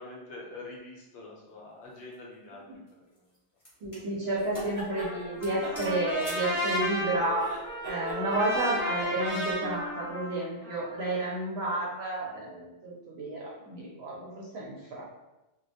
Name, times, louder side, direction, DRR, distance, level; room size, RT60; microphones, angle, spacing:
voice 1, 0.0-3.3, left 2 dB, 70° left, -3 dB, 0.9 m, -45 dB
sound 1, 1.8-2.1 2.9-4.1 4.5-4.8 5.1-5.2 5.4-6.5, equal, 30° left, 0.8 m, -47 dB
voice 2, 3.8-7.5 7.8-15.0, right 2 dB, 65° right, -4 dB, 0.7 m, -31 dB
sound 2, 4.4-5.1 5.6-7.0 7.3-9.5, right 2 dB, 40° right, 0.9 m, -41 dB
Trumpet, 4.9-11.1, equal, 10° right, 0.7 m, -34 dB
2.2 x 2.1 x 2.6 m, 0.99 s
omnidirectional pair, 1.3 m